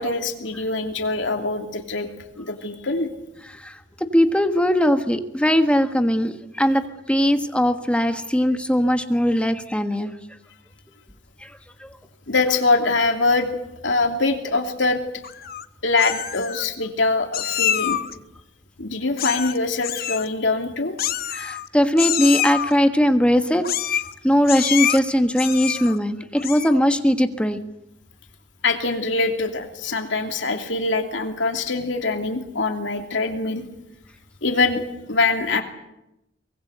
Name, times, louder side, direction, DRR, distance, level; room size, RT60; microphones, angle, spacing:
voice 1, 0.0-2.1 2.4-3.1 12.3-13.5 13.8-15.0 15.8-18.0 18.8-20.9 28.6-33.6 34.4-35.6, left 3 dB, 75° left, 4 dB, 2.9 m, -23 dB
voice 2, 4.0-6.8 7.1-10.1 11.4-11.5 11.8-11.9 21.3-23.6 24.2-27.6, equal, 5° left, 7 dB, 1.4 m, -20 dB
Meow, 15.2-15.6 16.0-16.7 17.3-18.1 19.2-19.6 19.8-20.3 21.0-21.7 22.0-22.7 23.6-24.1 24.5-25.0 25.4-26.0 26.4-26.8, left 10 dB, 55° left, 0.8 m, -26 dB
23.5 x 20.5 x 8.0 m, 0.86 s
head